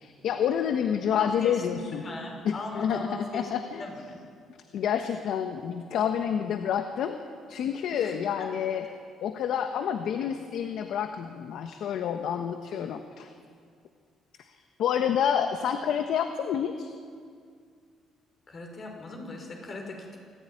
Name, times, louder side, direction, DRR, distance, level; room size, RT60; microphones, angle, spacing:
voice 1, 0.0-2.0 2.4-3.8 4.7-7.2 7.5-8.9 9.2-13.3 14.5-16.9, left 8 dB, 70° left, 7 dB, 1.3 m, -28 dB
voice 2, 1.2-3.5 3.8-4.2 7.9-8.1 8.4-8.5 18.5-20.2, left 2 dB, 40° left, 2 dB, 5.7 m, -39 dB
26.0 x 15.0 x 9.7 m, 2.2 s
cardioid pair, 120°, 0 cm